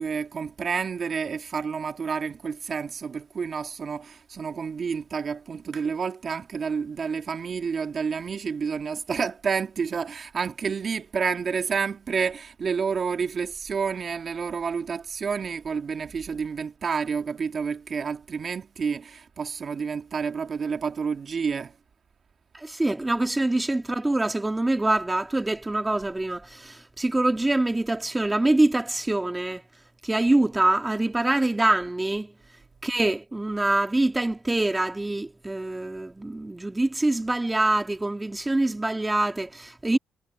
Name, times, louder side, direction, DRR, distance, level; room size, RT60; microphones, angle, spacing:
voice 1, 0.0-21.7, right 6 dB, 45° right, 1.5 m, -29 dB
voice 2, 22.6-29.6 30.0-32.3 32.8-40.0, right 2 dB, 15° right, 1.8 m, -25 dB
cardioid pair, 90°, 0 cm